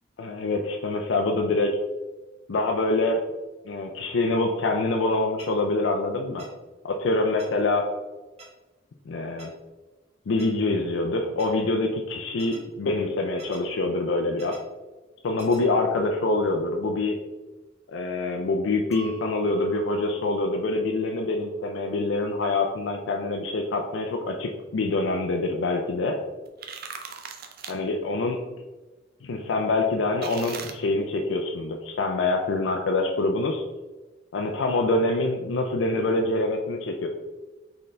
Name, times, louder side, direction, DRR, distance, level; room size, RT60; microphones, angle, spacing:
voice 1, 0.2-1.8 2.5-3.2 3.7-6.5 6.8-7.9 9.1-9.5 10.3-14.6 15.2-17.2 17.9-26.2 27.7-28.4 29.2-33.6 34.3-37.1, left 2 dB, 80° left, 2 dB, 0.5 m, -25 dB
sound 1, 5.4-5.5 6.4-6.5 7.4-7.5 8.4-8.5 9.4-9.5 10.4-10.5 11.4-11.5 12.4-12.6 13.4-13.6 14.4-14.6 15.4-15.6, right 2 dB, 35° right, 1.1 m, -46 dB
Chink clink, 18.9-24.4, right 2 dB, 15° left, 0.5 m, -39 dB
sound 2, 26.5-27.7 30.2-30.7, right 6 dB, 55° right, 0.5 m, -38 dB
4.3 x 3.8 x 3.2 m, 1.2 s
head